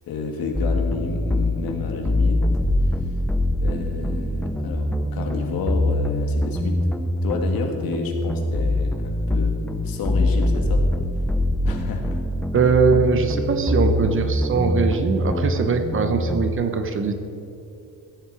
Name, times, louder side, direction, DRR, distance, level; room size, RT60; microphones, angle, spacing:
voice 1, 0.1-2.5 2.9-3.0 3.6-6.8 7.2-9.6 9.8-10.9 11.6-12.2 12.5-12.6, left 4 dB, 75° left, 3 dB, 2.1 m, -30 dB
sound 1, 0.5-16.5, left 1 dB, 5° left, 0.4 m, -23 dB
voice 2, 12.5-17.1, right 5 dB, 35° right, 7 dB, 1.0 m, -21 dB
16.0 x 11.0 x 4.8 m, 2.7 s
cardioid pair, 170°, 35 cm